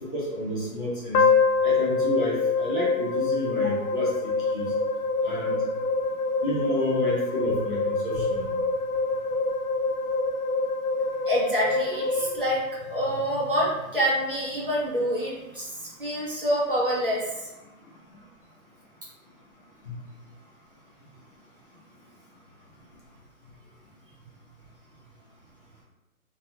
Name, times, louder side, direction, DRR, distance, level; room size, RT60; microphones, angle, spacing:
voice 1, 0.0-1.3 1.6-4.7 5.2-5.6 6.4-8.5 19.8-19.9, left 1 dB, 35° left, -7 dB, 0.7 m, -30 dB
sound 1, 1.1-13.4, left 3 dB, 80° left, 0.5 m, -26 dB
voice 2, 11.3-17.5, equal, 40° right, -6 dB, 0.6 m, -27 dB
2.3 x 2.3 x 2.8 m, 1.0 s
hypercardioid pair, 175°, 43 cm